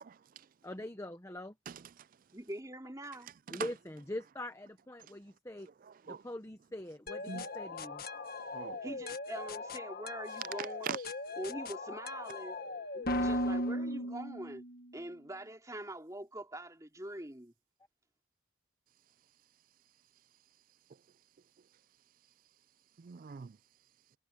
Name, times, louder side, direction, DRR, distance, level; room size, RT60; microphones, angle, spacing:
voice 1, 0.1-0.5 1.7-2.1 3.5-3.7 5.8-6.2 7.3-7.4 8.5-8.8 10.8-11.0 23.0-23.6, right 7 dB, 45° right, 0.3 m, -42 dB
voice 2, 0.6-1.5 3.5-5.7 6.1-8.0 11.8-12.0, left 1 dB, 15° left, 0.9 m, -43 dB
voice 3, 2.3-3.3 8.8-11.0 11.4-12.6 12.9-14.6 14.9-17.5, right 1 dB, 15° right, 2.8 m, -44 dB
sound 1, 7.1-14.9, left 1 dB, 50° left, 1.5 m, -38 dB
head